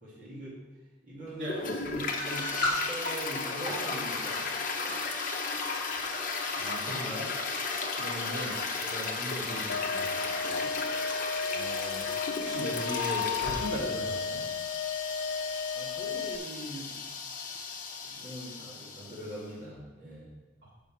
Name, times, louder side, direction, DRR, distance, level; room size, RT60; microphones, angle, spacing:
voice 1, 0.0-0.6 1.0-1.5 1.8-4.5 6.5-6.6 10.4-10.7 15.7-17.2 18.0-20.3, right 1 dB, 45° right, -8 dB, 2.0 m, -42 dB
Toilet flush, 1.4-19.4, left 4 dB, 45° left, 0.9 m, -35 dB
voice 2, 1.4-1.8 6.6-10.2 11.5-12.1 12.3-14.4 20.6-20.7, equal, 70° right, -6 dB, 2.7 m, -38 dB
sound 1, 2.2-2.8 3.5-3.8 4.8-5.0 5.7-6.1 6.9-7.1 7.4-7.5 8.2-8.4, left 1 dB, 25° right, 2.5 m, -33 dB
sound 2, 9.7-16.4, left 5 dB, 75° left, 0.4 m, -34 dB
6.7 x 5.8 x 5.8 m, 1.2 s
head